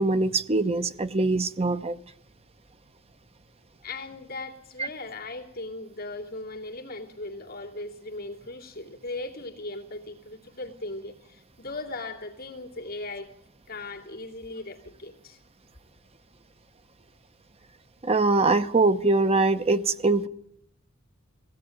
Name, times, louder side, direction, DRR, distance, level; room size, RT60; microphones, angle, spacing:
voice 1, 0.0-2.0 18.0-20.3, right 3 dB, 30° right, 0.9 m, -23 dB
voice 2, 3.8-13.3 13.7-15.4, left 2 dB, 45° left, 2.7 m, -38 dB
21.0 x 16.5 x 9.1 m
head